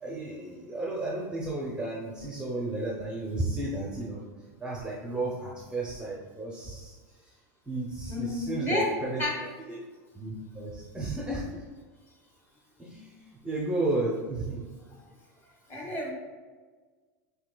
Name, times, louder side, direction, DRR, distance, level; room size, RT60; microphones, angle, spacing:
voice 1, 0.0-4.2 4.6-7.0 7.7-9.2 9.7-9.8 10.1-11.6 12.8-14.7 15.8-15.9, right 2 dB, 10° right, -4 dB, 0.6 m, -33 dB
voice 2, 8.1-9.4 15.7-16.1, left 1 dB, 25° left, -2 dB, 1.2 m, -30 dB
5.6 x 2.8 x 2.2 m, 1.4 s
supercardioid pair, 120°, 9 cm